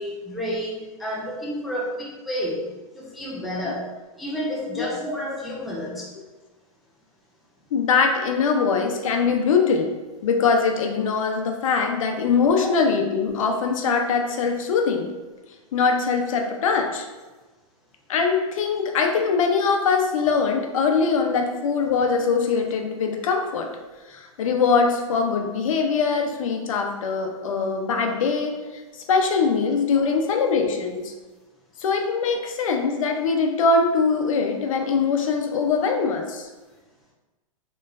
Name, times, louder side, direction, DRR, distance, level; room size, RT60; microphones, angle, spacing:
voice 1, 0.0-2.6 2.9-3.9 4.1-6.1 12.5-12.7, equal, ahead, -6 dB, 0.4 m, -30 dB
voice 2, 7.7-9.9 10.2-15.1 15.7-17.1 18.1-23.7 24.1-28.8 29.1-31.1 31.8-36.5, left 5 dB, 65° left, 3 dB, 0.7 m, -22 dB
4.4 x 3.1 x 2.5 m, 1.2 s
hypercardioid pair, 150°, 19 cm